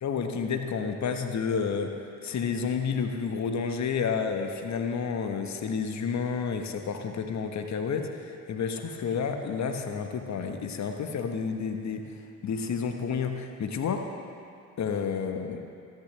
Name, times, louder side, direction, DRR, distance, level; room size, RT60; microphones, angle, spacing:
voice 1, 0.0-12.1 12.4-14.1 14.8-15.7, left 6 dB, 35° left, 6 dB, 1.4 m, -30 dB
28.0 x 10.5 x 3.3 m, 2.5 s
figure-of-eight pair, 50°, 45 cm